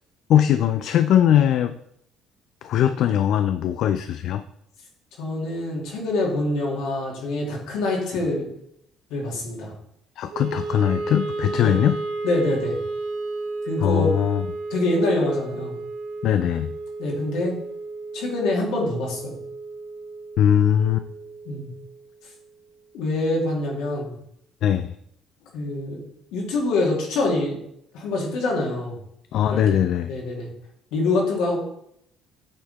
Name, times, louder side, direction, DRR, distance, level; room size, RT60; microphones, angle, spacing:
voice 1, 0.3-1.8 2.6-4.4 10.2-12.0 13.8-14.5 16.2-16.7 20.4-21.0 24.6-24.9 29.3-30.1, left 10 dB, 70° left, 10 dB, 0.3 m, -20 dB
voice 2, 5.2-8.5 9.1-9.7 11.6-11.7 12.2-12.8 13.7-14.1 14.7-15.8 17.0-17.6 18.1-19.4 21.5-21.7 22.9-24.2 25.5-26.0 26.3-27.6 27.9-29.0 29.5-29.8 30.1-30.5 30.9-31.6, left 2 dB, 85° left, -2 dB, 2.4 m, -25 dB
Wind instrument woodwind instrument, 10.3-22.5, right 3 dB, 85° right, 0.9 m, -33 dB
8.8 x 4.0 x 4.1 m, 0.73 s
cardioid pair, 105°, 0 cm